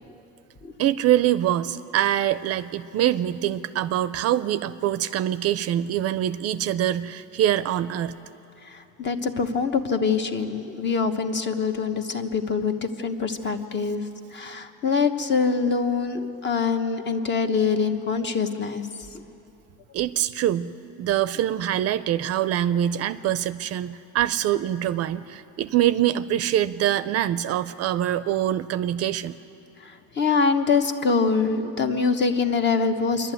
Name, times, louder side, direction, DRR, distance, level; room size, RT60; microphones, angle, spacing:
voice 1, 0.8-8.2 19.9-29.3, right 12 dB, 50° right, 14 dB, 0.5 m, -24 dB
voice 2, 8.6-14.0 14.3-18.8 19.1-19.2 29.8-33.3, left 5 dB, 35° left, 8 dB, 1.1 m, -24 dB
27.0 x 11.5 x 9.1 m, 2.9 s
cardioid pair, 155°, 33 cm